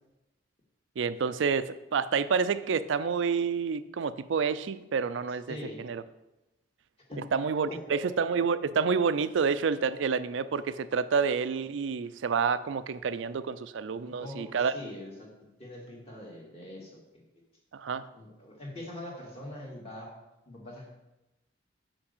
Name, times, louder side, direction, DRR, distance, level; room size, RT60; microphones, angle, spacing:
voice 1, 1.0-5.6 5.8-6.0 7.3-14.7 17.7-18.1, right 5 dB, 70° right, 14 dB, 0.4 m, -28 dB
voice 2, 5.5-5.8 7.1-7.3 7.7-8.0 14.2-15.3 15.6-17.0 18.1-20.1 20.5-20.9, left 1 dB, 30° left, -2 dB, 1.9 m, -42 dB
5.9 x 5.2 x 6.6 m, 0.97 s
head